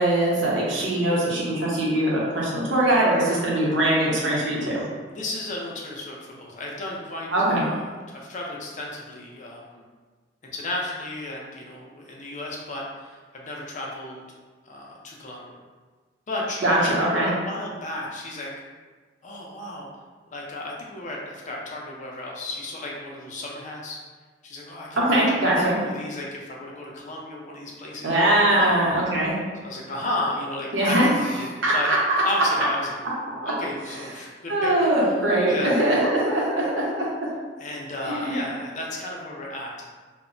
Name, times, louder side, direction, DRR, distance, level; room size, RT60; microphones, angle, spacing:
voice 1, 0.0-4.8 7.3-7.6 16.6-17.3 25.0-25.7 28.0-29.3 30.7-31.1 31.6-32.0 32.3-32.4 33.4-33.5 34.5-37.1 38.0-38.4, right 1 dB, 90° right, -5 dB, 0.8 m, -22 dB
voice 2, 5.1-9.8 10.5-14.2 14.6-15.5 16.3-18.5 19.2-19.9 20.3-24.0 24.4-25.2 25.5-28.7 29.6-31.9 32.2-33.0 33.4-34.7 35.5-35.8 37.6-39.9, left 1 dB, 40° left, -2 dB, 0.5 m, -33 dB
2.1 x 2.0 x 3.7 m, 1.4 s
head